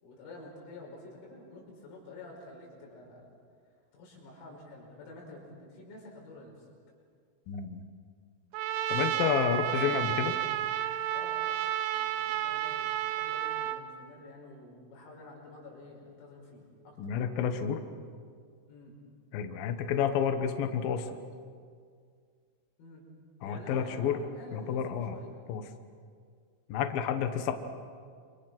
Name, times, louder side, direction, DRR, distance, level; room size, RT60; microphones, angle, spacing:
voice 1, 0.0-3.2 3.9-6.7 9.4-10.1 11.1-11.4 11.9-17.1 18.7-19.0 22.8-23.1 23.4-25.3, left 2 dB, 90° left, -2 dB, 8.2 m, -49 dB
voice 2, 7.5-7.8 8.9-10.3 17.0-17.8 19.3-21.1 23.4-24.2 24.5-25.2 25.5-25.6 26.7-27.5, left 8 dB, 70° left, 7 dB, 2.3 m, -30 dB
Trumpet, 8.5-13.8, right 12 dB, 75° right, 3.1 m, -31 dB
28.0 x 25.5 x 6.2 m, 2.1 s
omnidirectional pair, 6.0 m